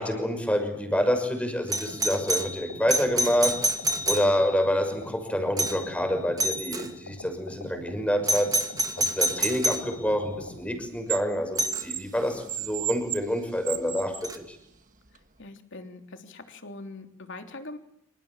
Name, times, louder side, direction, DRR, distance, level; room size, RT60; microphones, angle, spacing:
voice 1, 0.0-3.6 4.1-8.6 9.0-14.6, equal, 5° left, 6 dB, 6.1 m, -27 dB
Doorbell, 1.7-4.7 5.6-6.0 6.4-6.9 8.3-9.9 11.6-11.9 14.2-14.4, right 1 dB, 15° right, 2.3 m, -28 dB
sound 1, 1.9-10.6, left 1 dB, 80° left, 4.7 m, -44 dB
sound 2, 10.1-11.2 11.6-14.3 15.1-15.2, right 12 dB, 35° right, 1.6 m, -34 dB
voice 2, 15.4-17.8, left 2 dB, 55° left, 5 dB, 3.4 m, -42 dB
27.5 x 26.0 x 7.4 m, 0.78 s
head